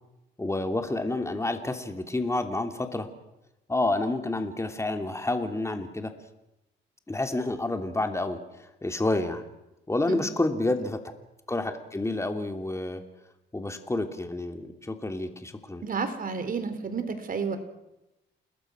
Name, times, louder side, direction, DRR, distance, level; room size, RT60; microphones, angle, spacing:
voice 1, 0.4-3.1 3.7-6.1 7.1-9.5 9.9-11.0 11.5-13.0 13.5-15.8, left 2 dB, 15° left, 6 dB, 3.0 m, -29 dB
voice 2, 15.8-17.6, right 5 dB, 45° right, 10 dB, 3.8 m, -31 dB
29.5 x 20.5 x 6.3 m, 0.93 s
cardioid pair, 90°, 20 cm